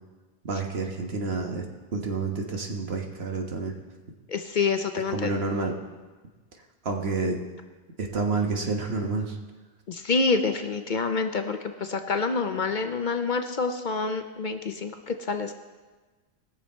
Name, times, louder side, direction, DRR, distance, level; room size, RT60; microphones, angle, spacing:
voice 1, 0.4-1.6 1.9-3.7 5.1-5.8 6.8-7.4 8.0-9.4, right 3 dB, 65° right, 2 dB, 1.6 m, -29 dB
voice 2, 4.3-5.3 9.9-15.5, left 4 dB, 50° left, 7 dB, 0.7 m, -27 dB
20.0 x 6.9 x 4.4 m, 1.3 s
omnidirectional pair, 1.1 m